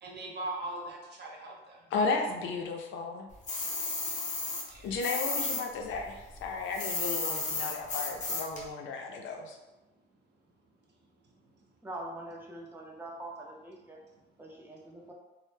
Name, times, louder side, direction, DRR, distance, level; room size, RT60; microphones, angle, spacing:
voice 1, 0.0-1.8 4.7-5.0, right 2 dB, 60° right, -2 dB, 0.7 m, -40 dB
voice 2, 1.9-3.3 4.8-9.6, left 4 dB, 80° left, 3 dB, 0.4 m, -34 dB
sound 1, 3.5-5.6 5.9-8.6, left 3 dB, 35° left, 0.6 m, -33 dB
voice 3, 11.8-14.0 14.4-15.1, right 1 dB, 10° right, -2 dB, 0.5 m, -43 dB
2.0 x 2.0 x 3.1 m, 1.1 s
cardioid pair, 90°, 20 cm